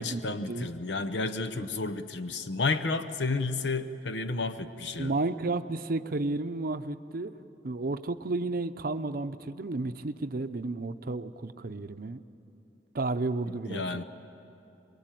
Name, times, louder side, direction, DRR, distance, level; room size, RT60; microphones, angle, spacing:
voice 1, 0.0-5.1 13.7-14.0, left 3 dB, 80° left, 10 dB, 0.8 m, -31 dB
voice 2, 5.0-7.3 7.6-12.2 12.9-14.0, right 2 dB, 55° right, 10 dB, 0.7 m, -32 dB
23.5 x 22.5 x 9.1 m, 2.8 s
head